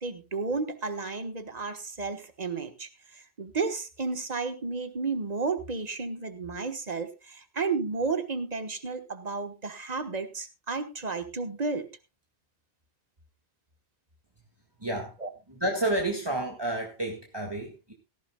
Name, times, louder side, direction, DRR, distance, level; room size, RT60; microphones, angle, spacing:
voice 1, 0.0-11.9 15.2-15.3, right 4 dB, 40° right, 9 dB, 1.5 m, -32 dB
voice 2, 14.8-15.2 15.5-17.9, right 1 dB, 25° right, 2 dB, 2.0 m, -30 dB
17.5 x 14.0 x 2.3 m, 0.27 s
omnidirectional pair, 1.1 m